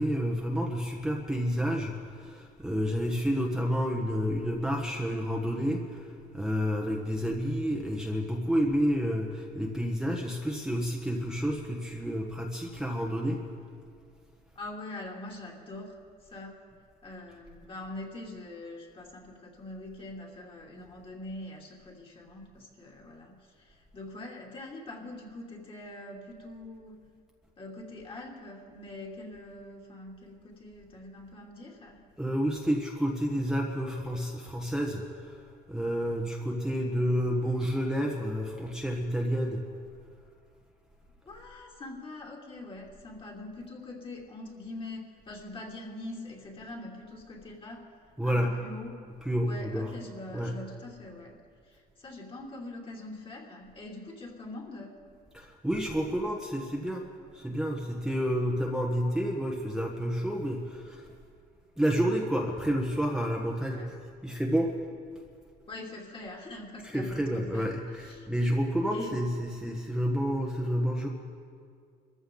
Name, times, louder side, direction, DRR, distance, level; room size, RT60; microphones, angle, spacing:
voice 1, 0.0-6.1 6.3-13.4 32.2-35.0 35.7-39.6 48.2-48.5 49.2-49.9 50.3-50.5 55.3-57.0 57.3-61.0 61.8-63.8 64.2-64.8 66.9-71.1, equal, 5° right, 0 dB, 1.3 m, -29 dB
voice 2, 14.5-16.0 16.2-16.6 17.0-27.0 27.6-32.0 41.2-47.8 48.2-49.0 49.4-51.4 51.6-55.0 63.7-63.9 65.7-67.7 68.0-68.3 68.9-69.2, left 2 dB, 30° left, -1 dB, 2.9 m, -43 dB
25.0 x 14.5 x 3.9 m, 2.1 s
cardioid pair, 110°, 17 cm